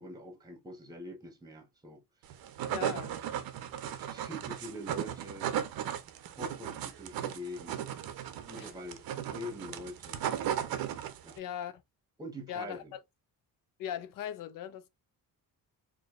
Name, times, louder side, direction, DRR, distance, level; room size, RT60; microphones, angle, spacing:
voice 1, 0.0-2.5 3.8-5.5 6.3-7.8 8.5-10.3 11.2-11.4 12.2-12.9, left 1 dB, 10° right, 0.9 m, -45 dB
sound 1, 2.3-11.4, right 10 dB, 80° right, 0.7 m, -36 dB
voice 2, 2.7-3.2 8.6-8.7 11.4-11.7 12.5-13.0 13.8-14.9, left 10 dB, 70° left, 0.6 m, -39 dB
4.5 x 2.7 x 2.4 m
cardioid pair, 150°, 35 cm